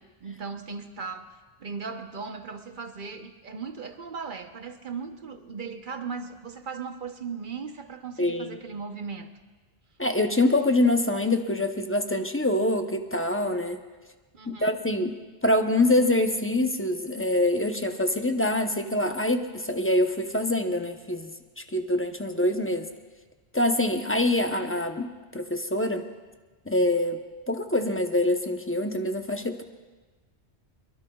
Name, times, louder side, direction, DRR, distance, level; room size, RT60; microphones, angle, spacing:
voice 1, 0.2-9.3 14.3-14.8, right 5 dB, 50° right, 7 dB, 1.0 m, -37 dB
voice 2, 8.2-8.6 10.0-13.8 14.5-15.1 15.4-21.3 21.6-22.9 23.5-26.0 26.7-27.2 27.5-29.6, left 1 dB, 15° left, 5 dB, 0.7 m, -25 dB
22.5 x 22.5 x 2.3 m, 1.3 s
omnidirectional pair, 1.1 m